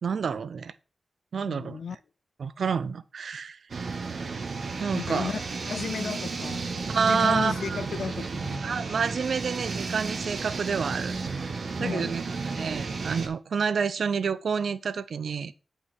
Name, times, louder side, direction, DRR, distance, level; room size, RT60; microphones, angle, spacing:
voice 1, 0.0-0.7 1.3-1.8 2.4-3.6 4.8-5.3 6.9-7.8 8.6-11.1 11.4-15.5, right 6 dB, 75° right, 0.5 m, -29 dB
voice 2, 1.5-2.0 4.9-8.9 11.8-12.2, left 6 dB, 75° left, 0.3 m, -34 dB
sound 1, 3.7-13.3, right 4 dB, 60° right, 1.3 m, -33 dB
8.3 x 5.6 x 4.4 m
wide cardioid pair, 125°, 0 cm